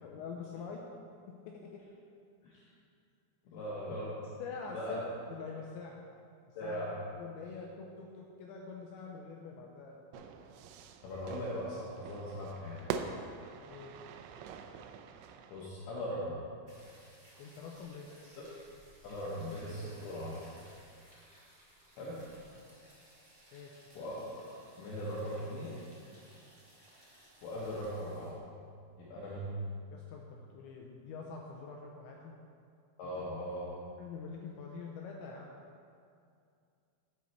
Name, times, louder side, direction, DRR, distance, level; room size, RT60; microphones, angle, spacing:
voice 1, 0.0-0.9 1.3-1.8 4.4-5.0 5.3-6.0 6.6-6.8 7.2-10.3 13.7-13.9 17.4-18.1 23.5-23.8 29.9-32.3 33.0-33.3 34.0-35.5, left 5 dB, 90° left, 0 dB, 2.6 m, -45 dB
voice 2, 3.5-4.1 4.7-5.0 6.6-7.0 11.0-12.9 15.5-16.3 18.2-18.4 19.0-20.4 22.0-22.2 23.9-24.4 24.8-25.7 27.4-28.3 29.0-29.6 33.0-33.7, equal, 70° left, -7 dB, 3.1 m, -39 dB
Fire / Fireworks, 10.1-15.7, right 7 dB, 90° right, 3.3 m, -44 dB
sound 1, 16.7-28.3, right 1 dB, 45° right, 1.1 m, -60 dB
13.0 x 8.3 x 3.2 m, 2.4 s
omnidirectional pair, 6.0 m